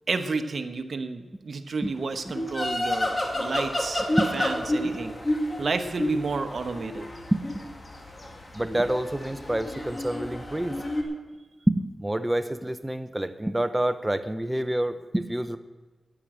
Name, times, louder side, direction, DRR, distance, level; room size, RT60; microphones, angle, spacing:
voice 1, 0.1-5.2 5.6-7.1, right 4 dB, 65° right, 8 dB, 1.0 m, -31 dB
sound 1, 2.2-11.0, left 1 dB, 35° left, 2.3 m, -30 dB
voice 2, 8.5-10.8 11.7-15.6, right 1 dB, 15° right, 9 dB, 0.8 m, -27 dB
9.9 x 9.8 x 7.7 m, 1.3 s
cardioid pair, 50°, 0 cm